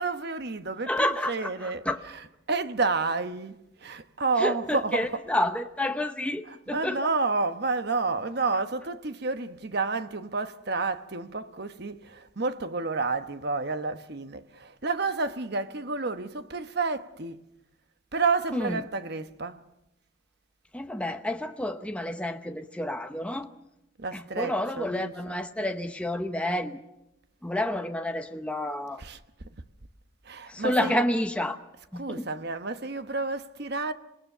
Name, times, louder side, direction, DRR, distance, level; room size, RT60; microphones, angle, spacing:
voice 1, 0.0-5.3 6.4-17.4 18.1-19.6 24.0-25.4 29.0-29.2 30.2-31.0 31.9-33.9, right 3 dB, 50° right, 1.1 m, -30 dB
voice 2, 0.9-2.0 4.4-7.0 18.5-18.8 20.7-23.5 24.1-26.8 27.4-29.0 30.5-31.6 31.9-32.3, left 1 dB, 5° left, 0.9 m, -29 dB
26.5 x 19.5 x 6.8 m
head